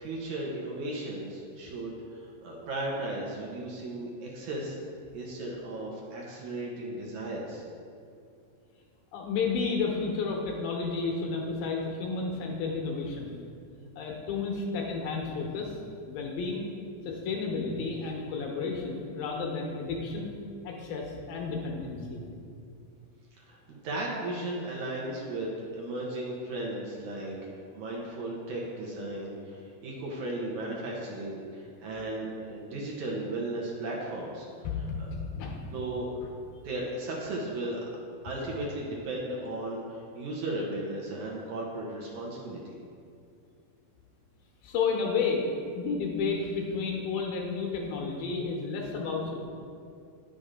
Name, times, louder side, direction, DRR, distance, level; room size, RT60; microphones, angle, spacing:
voice 1, 0.0-4.8 5.1-7.6 23.4-34.5 35.0-35.1 35.7-36.2 36.6-37.8 38.2-42.8, right 1 dB, 70° right, -3 dB, 2.2 m, -35 dB
voice 2, 9.1-13.4 14.0-15.7 16.1-16.6 17.0-20.4 20.6-22.2 34.6-35.7 44.6-49.5, left 4 dB, 80° left, -1 dB, 2.8 m, -32 dB
10.5 x 6.5 x 3.7 m, 2.4 s
omnidirectional pair, 4.2 m